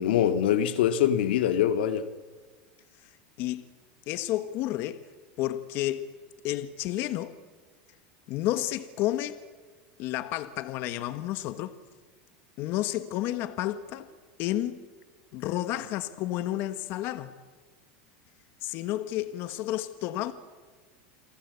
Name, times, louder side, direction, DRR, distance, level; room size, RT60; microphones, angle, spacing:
voice 1, 0.0-2.0, left 10 dB, 85° left, 2.2 m, -24 dB
voice 2, 4.1-5.0 5.4-6.1 6.4-7.4 8.3-9.4 10.0-11.8 12.6-14.1 14.4-14.8 15.3-17.3 18.6-20.3, left 14 dB, 45° left, 1.4 m, -31 dB
29.0 x 23.5 x 8.2 m
supercardioid pair, 155°, 5 cm